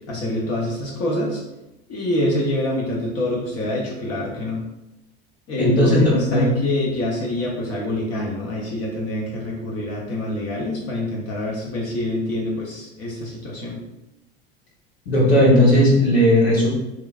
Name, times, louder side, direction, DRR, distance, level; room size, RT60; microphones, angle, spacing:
voice 1, 0.1-1.4 1.9-4.6 5.5-13.8, left 1 dB, 50° left, -3 dB, 0.7 m, -25 dB
voice 2, 5.6-6.5 15.1-16.7, left 1 dB, 90° left, -5 dB, 1.0 m, -16 dB
3.0 x 2.3 x 2.3 m, 0.96 s
hypercardioid pair, 75°, 31 cm